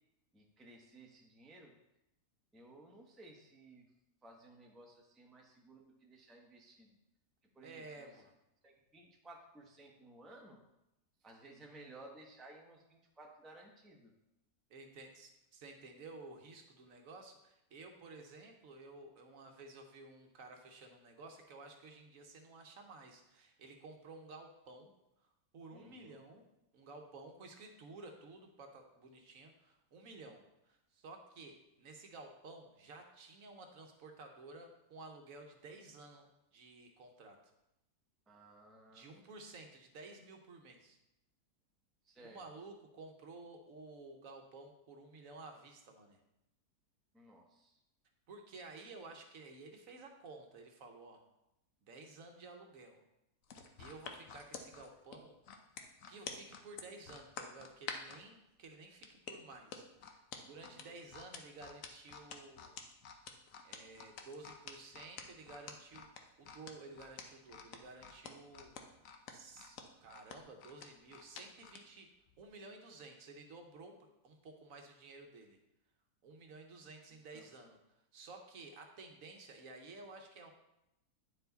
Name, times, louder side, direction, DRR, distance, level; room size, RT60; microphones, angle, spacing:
voice 1, 0.3-1.7 2.5-3.9 4.2-7.0 7.5-8.1 8.6-10.6 11.2-14.1 25.7-26.2 38.3-39.1 42.0-42.4 47.1-47.8 60.4-61.0 77.3-77.5, right 2 dB, ahead, 0 dB, 0.6 m, -57 dB
voice 2, 7.6-8.3 14.7-24.9 25.2-26.5 26.7-37.4 38.9-41.0 42.2-46.2 48.3-51.2 51.8-53.0 53.8-55.4 56.1-62.8 63.6-68.7 69.3-72.1 72.4-75.6 76.2-77.8 78.1-80.5, right 3 dB, 65° right, 4 dB, 1.2 m, -53 dB
sound 1, 53.4-58.2 59.0-71.8 72.3-72.4, left 6 dB, 65° left, 1.1 m, -48 dB
9.6 x 4.6 x 3.9 m, 0.87 s
omnidirectional pair, 1.6 m